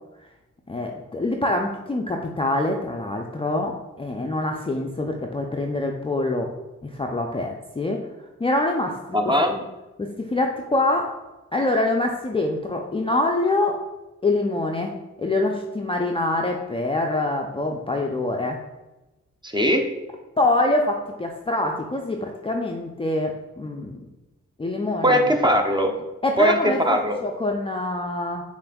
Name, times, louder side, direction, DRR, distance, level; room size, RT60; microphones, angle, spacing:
voice 1, 0.7-6.5 6.8-8.0 8.4-9.0 9.2-9.6 10.0-11.1 11.5-13.8 14.2-18.6 20.4-24.1 24.6-25.3 26.2-28.4, left 2 dB, 15° left, 1 dB, 0.4 m, -25 dB
voice 2, 9.1-9.5 19.4-19.8 25.0-25.9 26.4-27.2, equal, 15° right, 4 dB, 0.7 m, -20 dB
6.6 x 2.5 x 2.3 m, 1.0 s
supercardioid pair, 45°, 32 cm